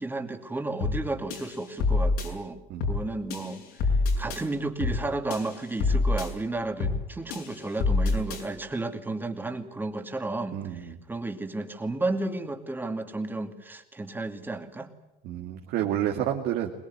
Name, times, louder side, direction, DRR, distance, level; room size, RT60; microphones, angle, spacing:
voice 1, 0.0-2.6 2.9-3.6 4.2-14.9 15.8-16.0, right 2 dB, 10° right, 6 dB, 2.5 m, -33 dB
sound 1, 0.8-1.0 1.3-2.3 2.8-3.0 3.3-4.4 4.8-5.0 5.3-6.3 6.8-7.0 7.3-8.4, left 3 dB, 80° left, 6.7 m, -26 dB
voice 2, 10.5-11.0 15.2-16.7, right 11 dB, 75° right, 1 dB, 2.3 m, -29 dB
23.0 x 20.5 x 9.5 m, 0.94 s
cardioid pair, 130°, 16 cm